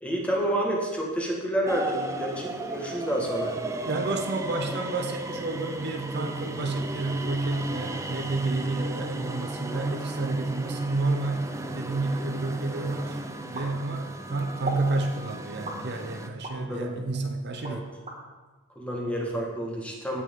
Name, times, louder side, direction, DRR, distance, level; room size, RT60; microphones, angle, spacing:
voice 1, 0.0-3.6 16.6-17.0 17.6-17.8 18.7-20.2, right 1 dB, 5° left, -2 dB, 1.6 m, -29 dB
sound 1, 1.7-16.3, right 2 dB, 15° right, 0.5 m, -35 dB
voice 2, 3.9-11.5 11.7-13.2 13.5-17.9, right 2 dB, 50° right, 5 dB, 0.7 m, -30 dB
sound 2, 13.5-14.2 14.6-14.9 15.6-16.6 17.1-18.2, right 2 dB, 35° right, 1.9 m, -36 dB
16.0 x 6.0 x 3.7 m, 1.2 s
head